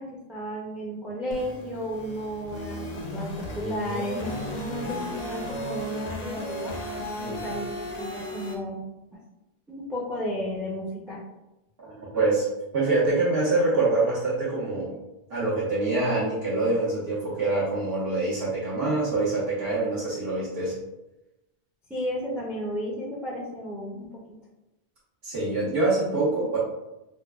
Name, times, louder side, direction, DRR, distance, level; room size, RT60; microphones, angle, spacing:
voice 1, 0.0-6.7 7.3-8.8 9.1-9.2 9.7-11.2 21.9-24.2, equal, ahead, -4 dB, 0.5 m, -33 dB
sound 1, 1.3-8.5, left 1 dB, 45° left, 0.6 m, -35 dB
voice 2, 11.8-12.4 12.7-14.9 15.3-20.7 25.2-26.6, right 2 dB, 70° right, -10 dB, 1.2 m, -25 dB
4.4 x 2.3 x 2.3 m, 0.96 s
omnidirectional pair, 1.0 m